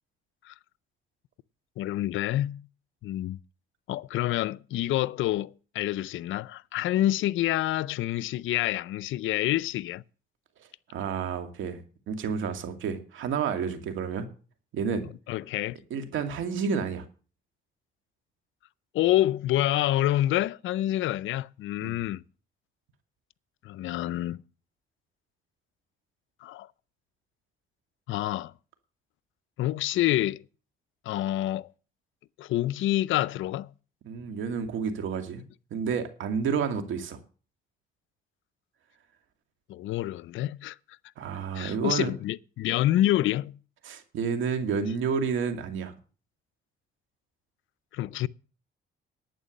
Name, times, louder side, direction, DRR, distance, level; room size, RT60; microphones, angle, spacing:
voice 1, 1.8-2.6 3.0-3.4 3.9-10.0 15.3-15.8 18.9-22.2 23.6-24.4 26.4-26.7 28.1-28.5 29.6-30.4 31.1-31.7 32.4-33.7 39.7-40.8 41.5-43.5 47.9-48.3, left 14 dB, 80° left, 0.5 m, -27 dB
voice 2, 10.6-11.8 12.1-14.3 14.7-15.0 15.9-17.0 21.8-22.0 34.1-35.4 35.7-37.2 41.2-42.1 43.8-45.9, right 6 dB, 80° right, 2.3 m, -30 dB
11.5 x 8.9 x 6.4 m
cardioid pair, 90°, 20 cm